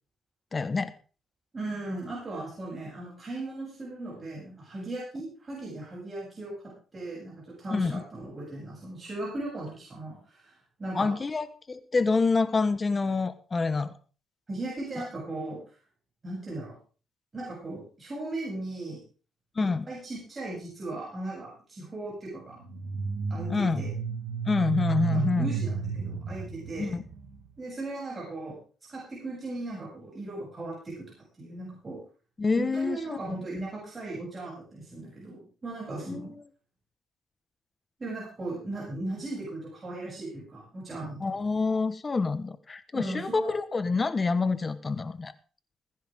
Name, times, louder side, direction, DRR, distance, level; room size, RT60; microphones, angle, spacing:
voice 1, 0.5-0.9 7.7-8.0 10.9-14.0 19.5-19.8 23.5-23.8 24.5-25.5 26.8-27.0 32.4-33.4 36.1-36.3 41.2-45.3, left 4 dB, 30° left, 13 dB, 1.4 m, -27 dB
voice 2, 1.5-6.5 6.9-11.1 14.5-15.6 16.2-16.8 17.3-19.0 19.6-22.6 23.3-23.9 25.1-27.0 27.6-28.6 28.9-32.0 32.6-36.3 38.0-41.3 42.9-43.5, right 2 dB, 30° right, -5 dB, 7.9 m, -37 dB
sound 1, 22.6-27.5, right 6 dB, 90° right, 2.8 m, -32 dB
20.5 x 10.5 x 3.7 m, 0.37 s
cardioid pair, 90°, 0 cm